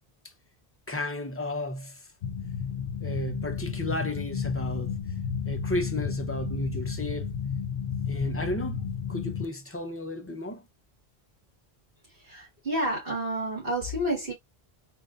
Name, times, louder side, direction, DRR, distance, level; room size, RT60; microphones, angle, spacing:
voice 1, 0.9-2.1 3.0-5.0 5.5-7.3 8.1-10.6, left 1 dB, 15° left, 0.6 m, -33 dB
sound 1, 2.2-9.5, left 7 dB, 60° left, 0.7 m, -32 dB
voice 2, 12.2-14.3, right 1 dB, 65° right, 2.3 m, -30 dB
3.7 x 2.6 x 2.4 m
omnidirectional pair, 1.0 m